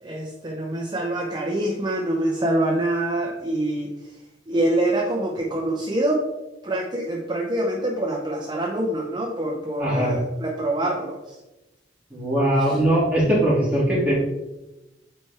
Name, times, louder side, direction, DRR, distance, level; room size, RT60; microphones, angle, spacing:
voice 1, 0.0-4.1 4.5-6.3 6.6-11.4 12.6-12.8, right 1 dB, 25° right, -1 dB, 0.8 m, -25 dB
voice 2, 9.8-10.1 12.1-14.1, right 1 dB, 10° right, -7 dB, 2.6 m, -20 dB
9.0 x 4.3 x 3.4 m, 1.0 s
head